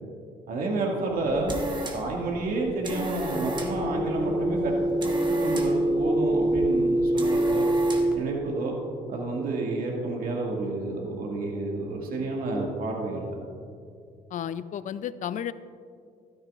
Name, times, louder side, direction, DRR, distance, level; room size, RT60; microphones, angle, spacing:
voice 1, 0.5-1.5 1.9-4.8 5.3-7.7 8.1-8.7 9.1-13.3, right 2 dB, 65° right, -1 dB, 2.1 m, -29 dB
sound 1, 1.1-8.3, right 2 dB, 30° right, 1.3 m, -37 dB
sound 2, 3.3-8.1, right 1 dB, 5° right, 1.5 m, -25 dB
voice 2, 14.3-15.5, left 9 dB, 55° left, 15 dB, 0.5 m, -32 dB
13.0 x 12.5 x 2.5 m, 2.3 s
cardioid pair, 80°, 16 cm